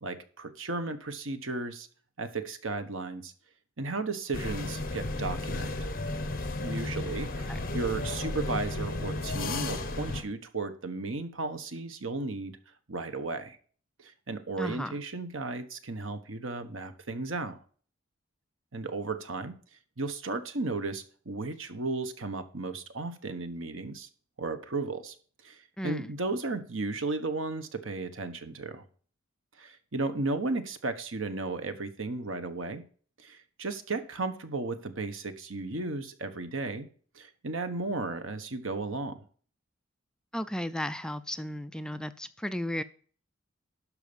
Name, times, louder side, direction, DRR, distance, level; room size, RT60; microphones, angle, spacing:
voice 1, 0.0-1.9 2.2-3.3 3.8-5.8 6.6-12.6 12.9-13.6 14.0-17.6 18.7-19.5 20.0-24.1 24.4-25.1 25.4-28.8 29.6-32.8 33.2-36.9 37.1-39.2, right 3 dB, 70° right, 9 dB, 1.3 m, -34 dB
sound 1, 4.3-10.2, left 2 dB, 45° left, 1.5 m, -33 dB
voice 2, 14.6-15.0 25.8-26.1 40.3-42.8, equal, 5° left, 11 dB, 0.4 m, -34 dB
12.0 x 4.9 x 7.1 m, 0.43 s
head